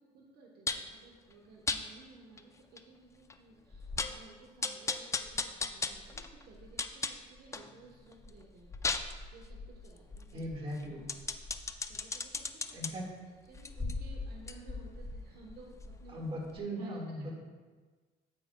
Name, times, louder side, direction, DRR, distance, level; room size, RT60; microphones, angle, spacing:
voice 1, 0.0-10.5 10.9-11.1 11.9-12.9 13.4-16.2 16.6-17.4, right 3 dB, 65° right, 0 dB, 1.2 m, -56 dB
sound 1, 0.7-1.0 1.7-1.8 2.4-2.5 2.8-2.9 3.3-3.4 3.7-4.2 4.6-7.7 8.1-12.9 13.5-16.2 16.5-16.6, left 4 dB, 15° left, 0.4 m, -37 dB
voice 2, 10.3-11.1 12.7-13.1 16.1-17.4, equal, 35° right, -1 dB, 1.8 m, -38 dB
9.5 x 8.3 x 2.3 m, 1.4 s
cardioid pair, 110°, 17 cm